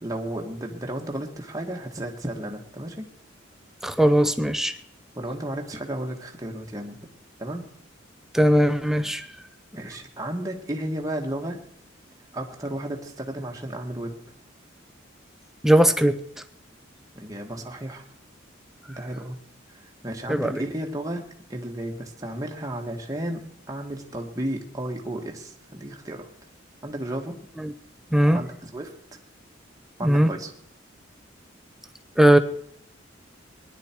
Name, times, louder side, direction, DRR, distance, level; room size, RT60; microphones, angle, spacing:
voice 1, 0.0-3.1 5.1-7.0 7.4-7.6 9.7-11.6 12.3-14.1 17.1-18.0 18.9-19.4 19.7-21.2 21.5-26.3 26.8-27.3 28.3-28.9 30.0-30.5, right 1 dB, 15° right, 1 dB, 1.6 m, -33 dB
voice 2, 3.8-4.7 8.3-9.3 15.6-16.2 20.3-20.6 27.6-27.7 28.1-28.4 30.0-30.3 32.2-32.4, right 1 dB, ahead, 9 dB, 0.7 m, -19 dB
18.5 x 11.0 x 4.5 m, 0.69 s
head